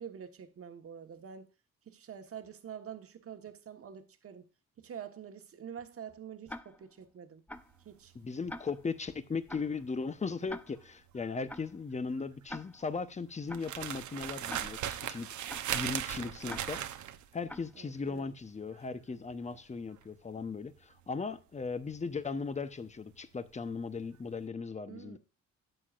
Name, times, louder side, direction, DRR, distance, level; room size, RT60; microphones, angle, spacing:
voice 1, 0.0-1.5 1.9-4.5 4.8-7.4 7.8-8.1 17.7-18.2 24.9-25.2, right 8 dB, 50° right, 1.3 m, -46 dB
Tick-tock, 6.5-7.0 7.5-7.8 8.5-9.0 9.5-9.8 10.5-11.0 11.5-11.8 12.5-13.0 13.5-13.8 14.5-15.0 15.5-15.8 16.5-17.0 17.5-17.8, left 1 dB, 5° left, 0.5 m, -46 dB
sound 1, 7.5-23.8 24.0-24.4, right 11 dB, 70° right, 0.9 m, -40 dB
voice 2, 8.1-15.3 15.7-16.8 17.3-25.2, left 4 dB, 25° left, 0.9 m, -37 dB
12.0 x 8.5 x 2.5 m
cardioid pair, 90°, 30 cm